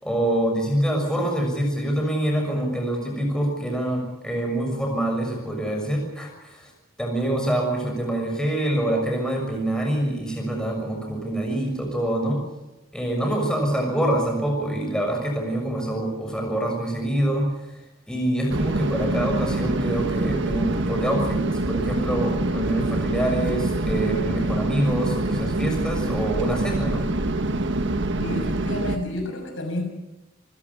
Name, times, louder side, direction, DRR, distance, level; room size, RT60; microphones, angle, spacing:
voice 1, 0.0-6.7 7.0-12.4 12.9-17.5 18.1-27.0, right 1 dB, 5° left, 1 dB, 6.5 m, -25 dB
sound 1, 18.5-29.0, right 2 dB, 60° right, 1.5 m, -25 dB
voice 2, 28.2-29.8, left 1 dB, 65° left, 4 dB, 6.5 m, -30 dB
28.5 x 16.0 x 8.4 m, 0.99 s
head